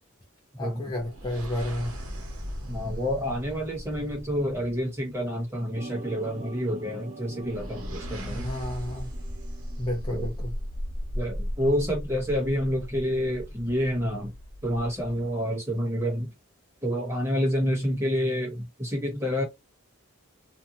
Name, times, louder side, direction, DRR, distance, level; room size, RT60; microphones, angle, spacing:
voice 1, 0.6-2.0 8.3-9.1 9.8-10.5, left 1 dB, 20° left, 0.5 m, -31 dB
sound 1, 0.8-5.2 7.3-15.3, equal, 80° right, 1.0 m, -37 dB
voice 2, 2.7-8.5 10.1-10.3 11.1-14.3 14.6-16.3 16.8-19.4, equal, 10° right, 1.2 m, -28 dB
sound 2, 5.7-11.0 11.3-11.7, right 2 dB, 35° right, 0.5 m, -43 dB
2.7 x 2.3 x 2.8 m
head